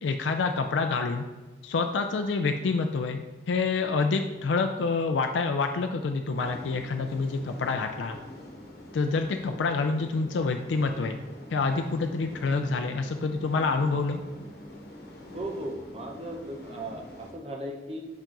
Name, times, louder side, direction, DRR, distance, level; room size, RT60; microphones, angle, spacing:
voice 1, 0.0-1.3 1.6-8.2 8.9-11.2 11.5-14.2, left 4 dB, 85° left, 5 dB, 0.4 m, -27 dB
sound 1, 6.3-17.3, left 1 dB, 60° left, 1.1 m, -45 dB
voice 2, 15.3-18.0, right 1 dB, 30° right, 1 dB, 0.7 m, -37 dB
5.8 x 4.5 x 3.8 m, 1.2 s
head